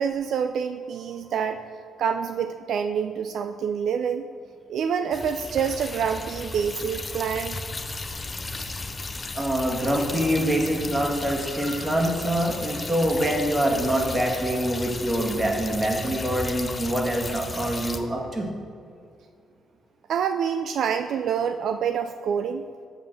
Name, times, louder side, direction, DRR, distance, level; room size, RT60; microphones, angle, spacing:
voice 1, 0.0-1.6 2.0-4.3 4.7-7.6 20.1-22.6, right 7 dB, 70° right, 8 dB, 0.3 m, -27 dB
sound 1, 5.1-18.0, left 3 dB, 25° left, 0.6 m, -35 dB
voice 2, 9.3-18.5, right 1 dB, 25° right, 0 dB, 1.9 m, -25 dB
6.9 x 5.6 x 6.6 m, 2.4 s
cardioid pair, 90°, 0 cm